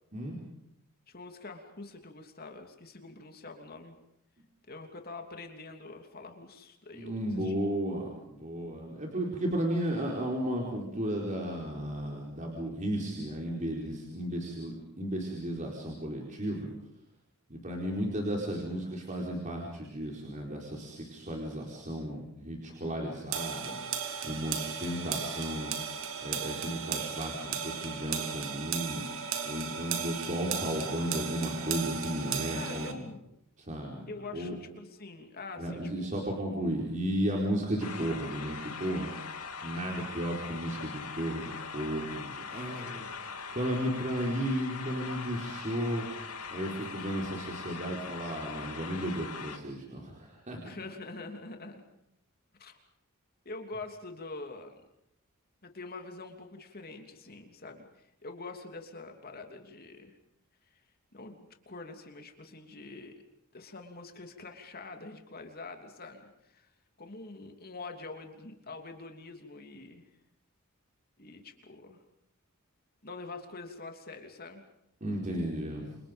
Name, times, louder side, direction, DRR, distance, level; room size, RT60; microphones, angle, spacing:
voice 1, 1.1-4.0 4.7-7.6 32.6-33.2 34.1-36.1 42.5-43.0 50.6-51.9 52.6-52.8 53.4-54.8 55.6-60.1 60.7-60.8 61.1-63.2 63.5-66.7 67.0-70.0 71.2-72.0 73.0-74.6, left 3 dB, 45° left, 4 dB, 3.0 m, -45 dB
voice 2, 6.9-16.7 17.5-23.8 24.2-25.7 26.2-29.0 29.4-33.0 33.6-34.6 35.6-39.1 39.6-43.1 43.5-46.0 46.5-50.7 75.0-76.0, equal, 35° right, -1 dB, 4.7 m, -34 dB
sound 1, 23.3-32.9, right 6 dB, 60° right, 3.3 m, -35 dB
sound 2, 37.8-49.6, left 5 dB, 85° left, 2.5 m, -41 dB
29.5 x 26.5 x 5.3 m, 0.82 s
head